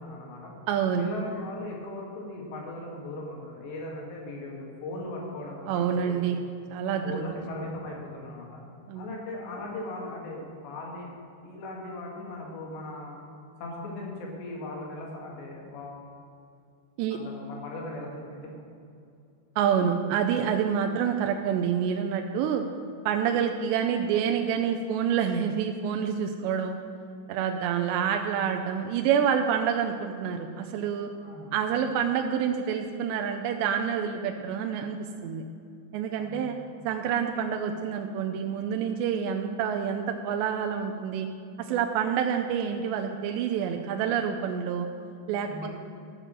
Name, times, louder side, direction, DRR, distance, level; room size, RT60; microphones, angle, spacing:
voice 1, 0.0-0.5 1.0-6.4 6.9-8.5 8.9-11.1 11.4-13.2 13.6-16.0 17.1-18.5 31.2-31.5 36.2-36.6 45.4-45.7, left 2 dB, 75° left, -1 dB, 4.3 m, -38 dB
voice 2, 0.7-1.1 5.7-6.4 6.7-7.2 8.9-9.1 17.0-17.2 19.6-22.6 23.1-26.8 27.3-31.1 31.5-35.4 35.9-36.6 36.8-41.3 41.6-44.9 45.3-45.7, right 8 dB, 80° right, 4 dB, 2.8 m, -27 dB
13.5 x 6.6 x 7.6 m, 2.5 s
omnidirectional pair, 5.1 m